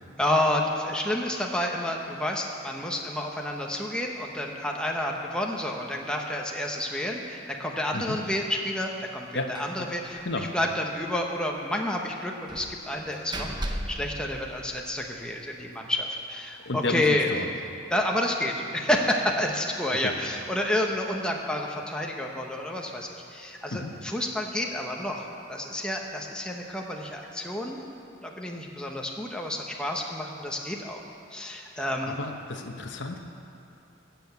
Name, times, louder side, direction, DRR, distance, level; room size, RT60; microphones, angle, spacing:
voice 1, 0.2-17.3 17.9-27.8 28.2-31.0 31.3-32.2, left 1 dB, 5° left, 0 dB, 1.0 m, -30 dB
Slam, 9.6-9.9 10.2-10.3 10.6-10.7 12.5-15.1, right 1 dB, 25° right, 0.8 m, -36 dB
voice 2, 16.6-17.5 19.9-20.1 23.7-24.0 31.8-33.2, left 2 dB, 60° left, 4 dB, 0.9 m, -32 dB
15.0 x 7.0 x 8.1 m, 2.8 s
head